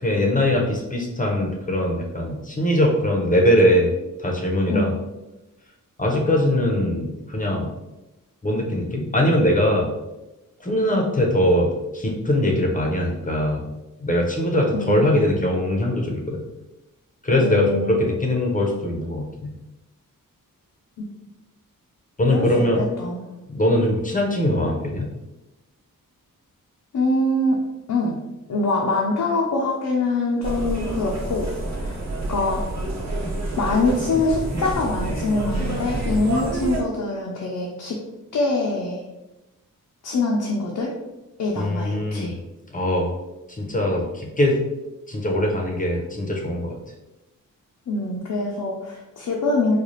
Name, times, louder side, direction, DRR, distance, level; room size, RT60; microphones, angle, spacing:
voice 1, 0.0-3.9 4.2-4.9 6.0-7.7 8.4-9.9 10.6-13.6 14.0-16.4 17.2-19.5 22.2-22.8 23.5-25.1 41.6-42.3 42.7-43.1 43.5-44.6 45.1-46.8, left 1 dB, 25° left, 0 dB, 0.7 m, -21 dB
voice 2, 14.7-15.5 17.4-18.0 21.0-21.1 22.3-23.3 26.9-27.6 27.9-28.2 28.5-31.5 31.7-32.0 32.3-32.7 33.6-38.0 38.3-39.0 40.0-40.9 41.4-42.3 47.9-49.8, left 2 dB, 60° left, -2 dB, 0.6 m, -24 dB
sound 1, 30.4-36.8, right 2 dB, 50° right, 1.0 m, -28 dB
4.0 x 2.3 x 3.1 m, 1.0 s
wide cardioid pair, 90°, 34 cm